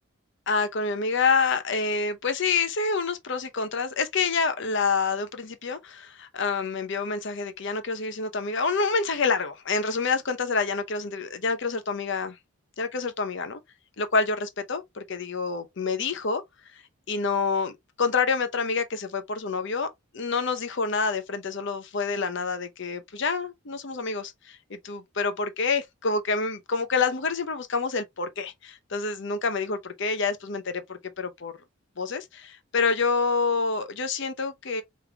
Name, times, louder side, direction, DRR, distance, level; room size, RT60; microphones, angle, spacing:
voice 1, 0.5-12.4 12.8-13.6 14.0-16.4 17.1-19.9 20.1-31.5 32.0-34.8, left 4 dB, 55° left, 0.7 m, -27 dB
5.0 x 3.2 x 2.2 m
head